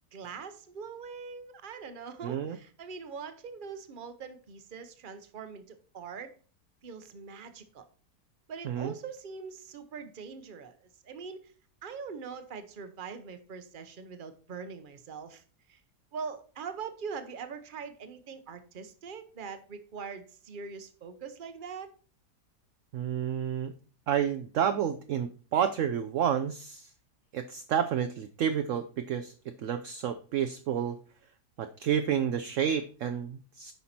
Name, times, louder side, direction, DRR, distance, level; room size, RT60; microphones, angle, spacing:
voice 1, 0.1-6.3 6.8-7.8 8.5-11.5 11.8-15.4 15.7-15.8 16.1-21.9, right 5 dB, 40° right, 10 dB, 0.9 m, -42 dB
voice 2, 2.2-2.6 8.6-8.9 22.9-23.7 24.1-26.9 27.3-29.3 29.6-31.0 31.6-33.7, right 8 dB, 65° right, 8 dB, 0.8 m, -30 dB
9.3 x 5.6 x 4.3 m, 0.39 s
omnidirectional pair, 1.7 m